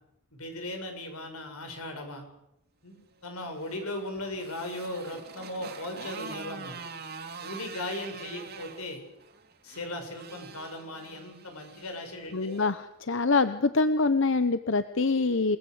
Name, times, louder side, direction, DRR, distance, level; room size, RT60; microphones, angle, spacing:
voice 1, 0.3-2.2 2.8-3.0 3.2-6.8 7.4-9.0 9.6-12.6, left 1 dB, 90° left, 5 dB, 7.0 m, -37 dB
Motorcycle, 3.3-12.7, right 5 dB, 45° right, 2.7 m, -45 dB
voice 2, 12.3-15.6, left 3 dB, 60° left, 12 dB, 0.8 m, -25 dB
29.0 x 19.0 x 8.0 m, 0.84 s
head